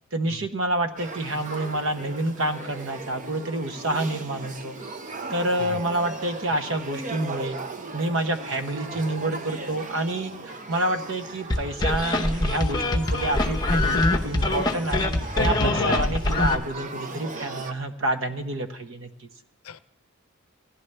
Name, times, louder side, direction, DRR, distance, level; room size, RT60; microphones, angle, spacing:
voice 1, 0.1-4.8 5.3-7.6 7.9-15.1 15.4-19.3, right 1 dB, 65° right, 8 dB, 0.9 m, -28 dB
Male speech man speaking / Child speech kid speaking / Conversation, 1.0-17.7, right 3 dB, 35° right, 0.6 m, -38 dB
sound 1, 11.5-16.5, left 2 dB, 20° left, 0.8 m, -23 dB
voice 2, 15.3-16.2 19.6-19.9, left 4 dB, 90° left, 13 dB, 0.5 m, -31 dB
17.0 x 11.0 x 3.3 m, 0.78 s
head